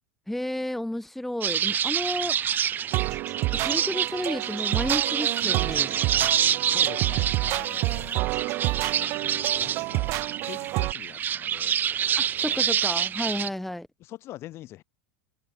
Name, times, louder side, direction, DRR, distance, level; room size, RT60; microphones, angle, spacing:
voice 1, 0.3-2.6 3.5-6.0 12.2-13.9, left 1 dB, 5° left, 2.2 m, -32 dB
sound 1, 1.4-13.5, right 9 dB, 30° right, 1.6 m, -27 dB
sound 2, 2.9-10.9, right 23 dB, 50° right, 1.1 m, -29 dB
voice 2, 6.6-8.3 9.0-11.8 12.4-12.8 13.4-13.5 14.0-14.8, left 15 dB, 45° left, 6.4 m, -44 dB
hypercardioid pair, 100°, 6 cm